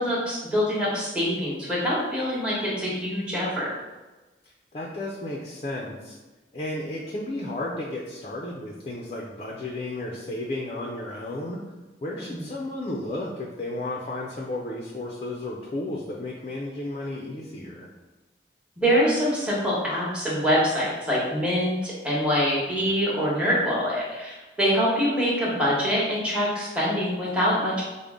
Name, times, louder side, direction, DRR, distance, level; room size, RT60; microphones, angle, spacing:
voice 1, 0.0-3.7 12.2-12.4 18.8-27.8, equal, 5° right, -7 dB, 1.0 m, -25 dB
voice 2, 4.4-6.2 6.5-11.6 12.0-17.9, left 1 dB, 35° left, -1 dB, 0.4 m, -33 dB
5.0 x 2.0 x 3.5 m, 1.2 s
head